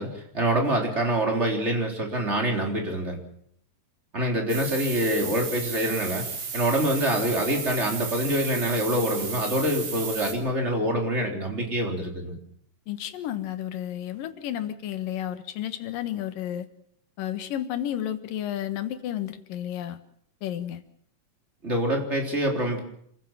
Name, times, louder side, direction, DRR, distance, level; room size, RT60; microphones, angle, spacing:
voice 1, 0.0-3.2 4.1-6.2 6.5-12.4 21.6-22.8, right 1 dB, 20° right, 2 dB, 3.8 m, -25 dB
sound 1, 4.5-10.3, right 5 dB, 90° right, 5.4 m, -34 dB
voice 2, 12.9-16.7 17.2-20.0 20.4-20.8, left 11 dB, 85° left, 10 dB, 3.1 m, -32 dB
28.0 x 15.0 x 7.4 m, 0.68 s
omnidirectional pair, 3.8 m